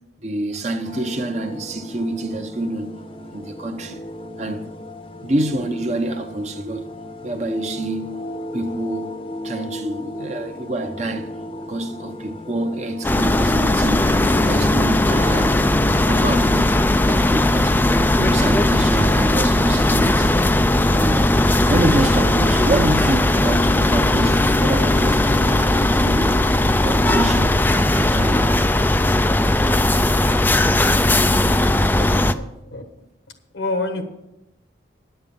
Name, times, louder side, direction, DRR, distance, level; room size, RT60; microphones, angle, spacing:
voice 1, 0.2-3.0 3.3-4.0 4.4-4.7 5.2-6.9 7.2-9.2 9.4-11.3 11.7-15.7 16.0-17.8 18.2-20.4 20.9-21.4 21.7-26.4 26.8-27.6 27.9-28.6, right 1 dB, 40° right, 0.8 m, -26 dB
sound 1, 0.9-17.2, left 1 dB, 30° left, 0.8 m, -35 dB
sound 2, 13.0-32.3, left 1 dB, 10° left, 0.3 m, -18 dB
voice 2, 31.9-33.1 33.5-34.1, left 2 dB, 80° left, 1.4 m, -28 dB
10.0 x 7.8 x 7.0 m
head